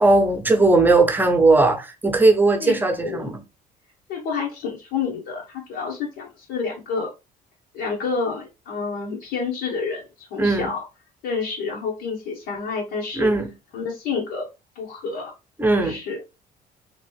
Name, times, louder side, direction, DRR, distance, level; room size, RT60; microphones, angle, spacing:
voice 1, 0.0-3.4 10.4-10.7 13.2-13.5 15.6-16.0, right 3 dB, 10° right, 0.6 m, -18 dB
voice 2, 2.6-3.3 4.1-7.1 7.7-10.8 11.2-13.3 13.7-14.5 14.7-15.3 15.7-16.2, left 5 dB, 90° left, 0.9 m, -29 dB
2.9 x 2.6 x 3.0 m
cardioid pair, 110°, 17 cm